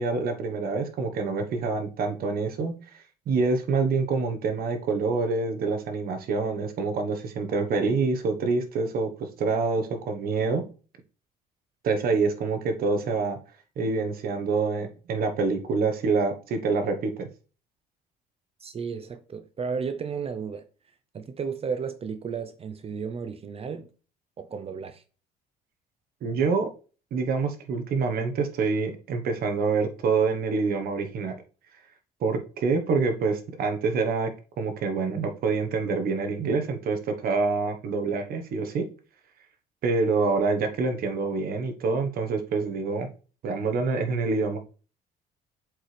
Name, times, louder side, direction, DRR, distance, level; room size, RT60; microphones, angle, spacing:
voice 1, 0.0-2.7 3.3-10.6 11.8-13.4 13.8-17.3 26.2-26.7 27.1-31.3 32.2-34.3 34.6-38.9 39.8-43.1 43.4-44.6, right 4 dB, 60° right, 1.3 m, -26 dB
voice 2, 18.6-20.6 21.1-23.9 24.4-25.0, right 6 dB, 35° right, 0.7 m, -33 dB
7.6 x 4.8 x 3.4 m
cardioid pair, 110°, 17 cm